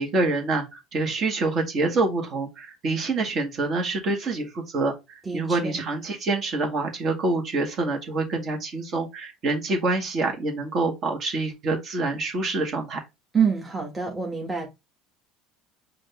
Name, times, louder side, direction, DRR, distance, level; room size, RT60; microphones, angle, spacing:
voice 1, 0.0-13.0, right 3 dB, 40° right, 1.9 m, -26 dB
voice 2, 5.2-5.8 13.3-14.7, right 6 dB, 15° right, 1.4 m, -26 dB
5.1 x 2.9 x 3.5 m
supercardioid pair, 120°, 0 cm